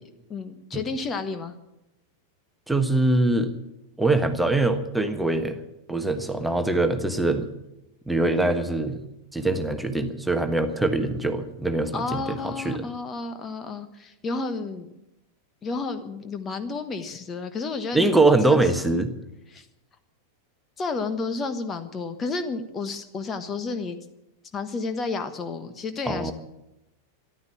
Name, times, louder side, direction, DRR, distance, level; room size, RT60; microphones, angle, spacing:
voice 1, 0.3-1.5 11.9-14.9 15.6-18.2 18.5-18.6 19.5-19.7 20.8-24.0 24.5-26.3, left 4 dB, 25° left, 9 dB, 1.2 m, -31 dB
voice 2, 2.7-3.5 4.0-5.6 5.9-7.5 8.1-9.0 9.3-12.8 17.9-19.1 26.1-26.3, right 2 dB, 5° right, 7 dB, 1.3 m, -23 dB
14.0 x 11.5 x 8.4 m, 0.90 s
figure-of-eight pair, 90°, 0 cm